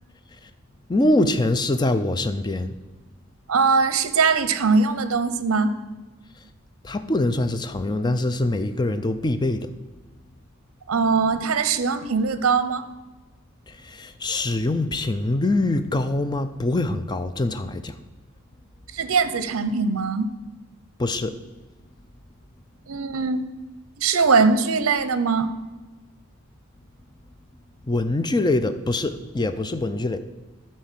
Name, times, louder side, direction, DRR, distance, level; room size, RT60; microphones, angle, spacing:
voice 1, 0.9-2.8 6.8-9.7 13.7-18.0 21.0-21.3 27.9-30.2, left 2 dB, 20° left, 10 dB, 0.4 m, -24 dB
voice 2, 3.5-5.7 10.9-12.8 18.9-20.3 22.9-23.5 24.0-25.5, right 4 dB, 75° right, 12 dB, 0.7 m, -21 dB
10.5 x 4.4 x 7.4 m, 1.2 s
head